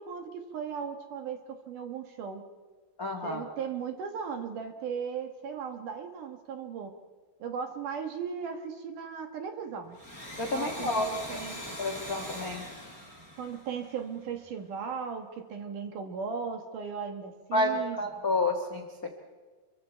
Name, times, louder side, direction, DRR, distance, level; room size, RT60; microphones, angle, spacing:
voice 1, 0.0-2.4 3.2-6.9 7.4-10.0 10.5-11.6 13.4-18.0, right 6 dB, 60° right, 5 dB, 2.5 m, -37 dB
voice 2, 3.0-3.4 10.4-11.1 11.8-12.6 17.5-19.1, left 2 dB, 50° left, 4 dB, 1.0 m, -29 dB
Domestic sounds home sounds, 9.8-14.3, equal, 5° right, 5.7 m, -42 dB
27.5 x 23.5 x 4.5 m, 1.4 s
omnidirectional pair, 4.7 m